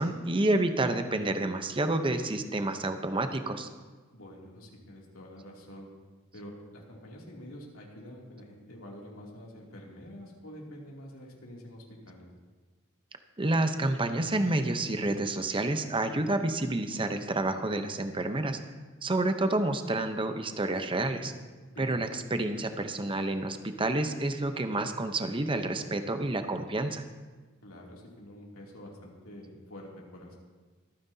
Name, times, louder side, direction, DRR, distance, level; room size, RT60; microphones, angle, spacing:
voice 1, 0.0-3.7 13.4-18.6 19.0-21.3 21.8-27.0, right 2 dB, 25° right, 7 dB, 0.8 m, -29 dB
voice 2, 4.1-5.9 6.3-12.3 21.7-22.0 27.6-30.3, equal, 85° left, -2 dB, 2.8 m, -47 dB
24.0 x 9.4 x 2.8 m, 1.3 s
head